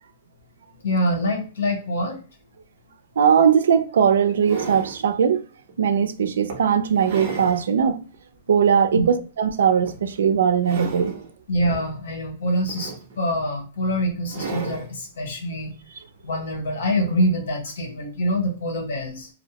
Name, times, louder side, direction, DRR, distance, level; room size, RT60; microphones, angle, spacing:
voice 1, 0.8-2.2 8.9-9.1 11.5-15.7 16.2-19.3, equal, 85° left, 1.0 m, -25 dB
voice 2, 3.2-5.4 5.8-8.0 8.5-11.1, right 7 dB, 90° right, 0.3 m, -19 dB
sound 1, 3.3-3.4 4.0-5.0 5.7-5.9 6.5-7.7 8.1-8.2 9.8-10.2 10.5-11.3 12.5-13.4 14.3-14.9 16.3-16.4, right 5 dB, 50° right, 0.7 m, -34 dB
2.6 x 2.0 x 2.8 m
hypercardioid pair, 160°, 0 cm